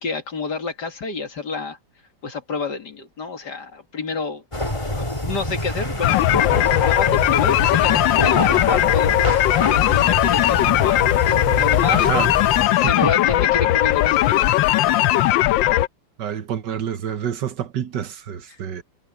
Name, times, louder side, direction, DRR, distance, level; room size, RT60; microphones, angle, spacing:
voice 1, 0.0-1.8 2.2-4.4 4.9-6.2 6.8-12.5 12.8-14.8 18.5-18.6, left 4 dB, 60° left, 2.9 m, -30 dB
sound 1, 4.5-12.7, left 1 dB, 15° left, 1.9 m, -26 dB
sound 2, 6.0-15.9, left 14 dB, 80° left, 1.3 m, -18 dB
voice 2, 11.9-12.3 12.7-13.1 16.2-18.8, right 9 dB, 70° right, 1.6 m, -27 dB
omnidirectional pair, 2.1 m